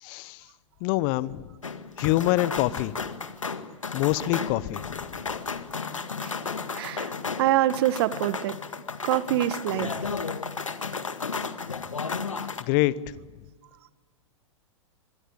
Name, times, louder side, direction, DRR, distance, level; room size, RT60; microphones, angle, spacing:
voice 1, 0.0-0.4 0.8-1.5 2.0-2.9 3.9-5.1 12.6-12.9, left 17 dB, 40° left, 19 dB, 1.0 m, -25 dB
sound 1, 1.6-12.6, left 5 dB, 80° left, 1.8 m, -33 dB
voice 2, 6.7-7.1 7.4-8.6 9.0-9.9, right 14 dB, 50° right, 15 dB, 1.4 m, -25 dB
24.5 x 23.0 x 8.8 m, 1.4 s
figure-of-eight pair, 100°, 16 cm